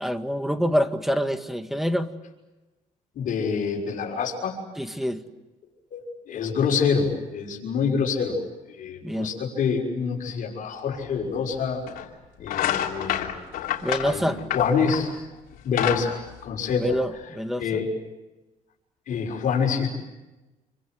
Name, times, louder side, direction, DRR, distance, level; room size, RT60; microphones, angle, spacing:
voice 1, 0.0-2.1 4.8-5.2 9.0-9.3 13.8-14.4 16.8-17.6, equal, ahead, 8 dB, 1.8 m, -26 dB
voice 2, 3.1-4.6 5.9-8.4 8.7-11.8 12.4-13.3 14.0-15.1 15.6-17.0 17.6-17.9 19.1-19.9, left 6 dB, 65° left, 0 dB, 6.3 m, -26 dB
sound 1, 11.1-11.2 11.9-12.1 12.4-15.1 15.5-17.2, left 11 dB, 85° left, 3.3 m, -28 dB
28.5 x 25.0 x 7.9 m, 1.1 s
cardioid pair, 105°, 15 cm